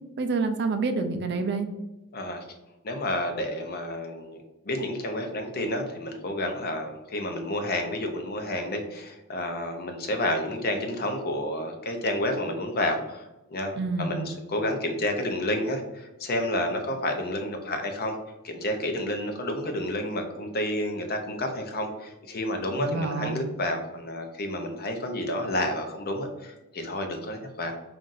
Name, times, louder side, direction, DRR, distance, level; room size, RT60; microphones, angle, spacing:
voice 1, 0.2-1.7 13.7-14.3 22.8-23.4, right 4 dB, 50° right, 7 dB, 0.4 m, -28 dB
voice 2, 2.1-2.4 2.8-4.4 4.6-18.2 18.4-27.8, left 1 dB, 45° left, 5 dB, 0.6 m, -30 dB
5.5 x 2.5 x 2.5 m, 1.0 s
head